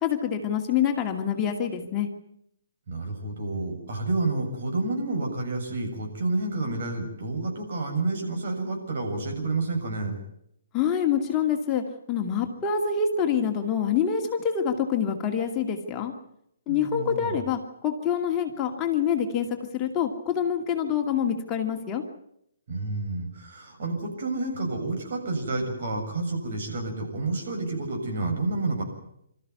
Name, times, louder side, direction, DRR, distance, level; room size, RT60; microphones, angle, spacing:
voice 1, 0.0-2.1 10.7-11.8 12.1-16.1 16.7-19.5 19.7-22.0, left 8 dB, 20° left, 3 dB, 2.3 m, -26 dB
voice 2, 2.9-10.2 16.7-17.4 22.7-28.8, right 2 dB, 55° right, 1 dB, 7.2 m, -29 dB
25.0 x 14.0 x 9.6 m, 0.76 s
figure-of-eight pair, 130°, 0 cm